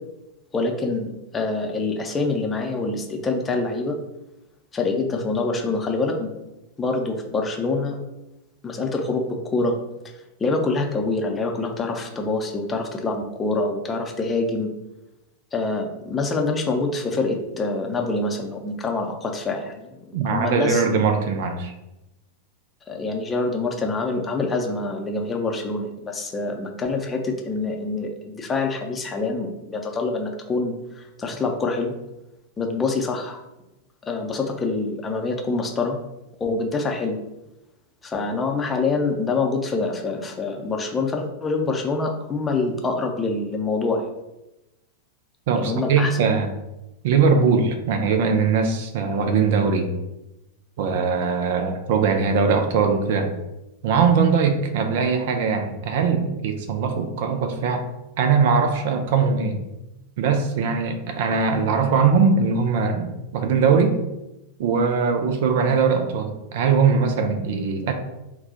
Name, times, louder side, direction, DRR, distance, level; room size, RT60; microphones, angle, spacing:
voice 1, 0.5-4.0 4.7-6.3 6.8-8.0 8.6-9.7 10.4-14.7 15.5-20.8 22.9-31.9 32.6-33.4 34.0-36.0 36.4-37.2 38.0-44.1 45.5-46.2, left 3 dB, 20° left, 2 dB, 0.6 m, -25 dB
voice 2, 20.1-21.7 45.5-46.5 47.0-49.9 50.8-53.3 53.8-57.9 58.2-59.6 60.2-64.0 64.6-67.9, right 5 dB, 50° right, 6 dB, 0.4 m, -21 dB
4.1 x 2.2 x 3.9 m, 0.94 s
figure-of-eight pair, 90°, 0 cm